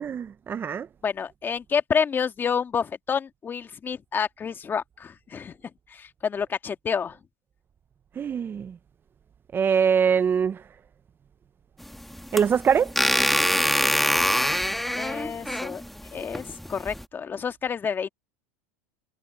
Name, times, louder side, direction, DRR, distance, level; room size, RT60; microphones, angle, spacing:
voice 1, 0.0-0.9 8.2-8.8 9.5-10.6 12.3-12.9, right 7 dB, 25° right, 0.7 m, -23 dB
voice 2, 1.0-5.5 5.9-7.2 14.9-15.8 16.1-18.1, left 6 dB, 25° left, 1.9 m, -29 dB
sound 1, 11.8-17.0, equal, ahead, 1.5 m, -25 dB
hypercardioid pair, 105°, 8 cm